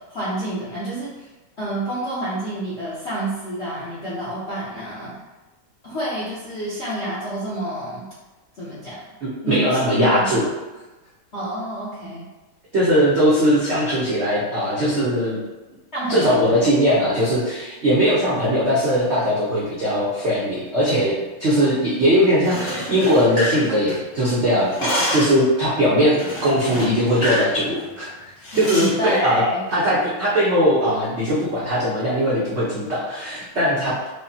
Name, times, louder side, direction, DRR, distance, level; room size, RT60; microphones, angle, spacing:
voice 1, 0.1-1.2 1.6-5.1 5.8-8.0 8.5-9.0 9.4-10.4 11.3-12.2 15.9-16.7 28.5-29.6, right 1 dB, 65° left, -10 dB, 0.6 m, -28 dB
voice 2, 9.2-10.4 12.7-15.4 16.1-28.1 28.6-29.4 29.7-34.1, equal, 90° right, -8 dB, 0.6 m, -20 dB
Dog food, 22.3-24.2 24.5-25.4 26.2-27.5 27.8-28.0 28.4-29.0, equal, 50° left, 2.0 m, -27 dB
4.9 x 2.1 x 2.7 m, 1.1 s
omnidirectional pair, 2.3 m